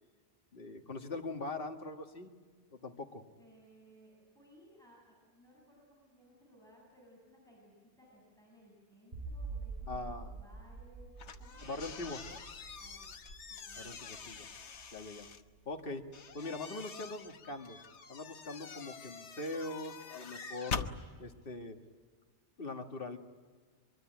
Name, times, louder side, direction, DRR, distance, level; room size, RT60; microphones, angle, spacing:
voice 1, 0.5-2.3 2.7-3.2 9.9-10.3 11.6-12.2 13.8-14.5 14.9-15.3 15.7-16.1 16.3-17.8 18.1-20.9 21.2-21.8 22.6-23.2, left 2 dB, 50° left, 4 dB, 2.0 m, -42 dB
voice 2, 3.4-11.7 12.0-12.4 12.8-13.1 13.5-14.2, equal, 5° left, -4 dB, 7.3 m, -61 dB
sound 1, 9.1-16.3, right 3 dB, 55° right, 6.5 m, -47 dB
sound 2, 11.2-15.4 16.1-20.9, left 5 dB, 75° left, 1.4 m, -45 dB
24.0 x 24.0 x 9.2 m, 1.5 s
omnidirectional pair, 1.2 m